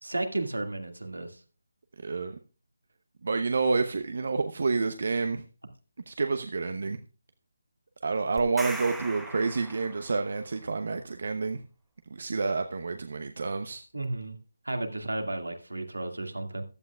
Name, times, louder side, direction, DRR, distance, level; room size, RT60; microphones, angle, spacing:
voice 1, 0.0-1.4 13.9-14.4 14.6-16.6, right 2 dB, 85° right, 4 dB, 2.2 m, -33 dB
voice 2, 2.0-2.4 3.2-5.4 6.1-7.0 8.0-11.6 12.1-13.8, right 4 dB, 55° right, 8 dB, 0.8 m, -29 dB
sound 1, 8.4-10.3, right 2 dB, ahead, 0.9 m, -40 dB
15.0 x 11.5 x 2.4 m, 0.36 s
figure-of-eight pair, 155°, 0 cm